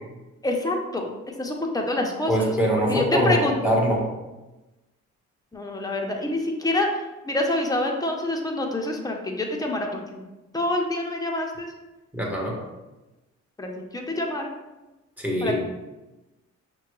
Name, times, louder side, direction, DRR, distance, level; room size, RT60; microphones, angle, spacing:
voice 1, 0.4-1.1 1.4-2.5 2.9-3.6 5.5-6.9 7.2-10.2 10.5-11.7 13.6-14.5 15.4-15.5, left 1 dB, 10° left, 1 dB, 0.7 m, -26 dB
voice 2, 2.3-4.0 12.1-12.6 15.2-15.6, equal, 5° right, -2 dB, 1.0 m, -23 dB
5.6 x 2.2 x 3.1 m, 1.1 s
cardioid pair, 90°, 30 cm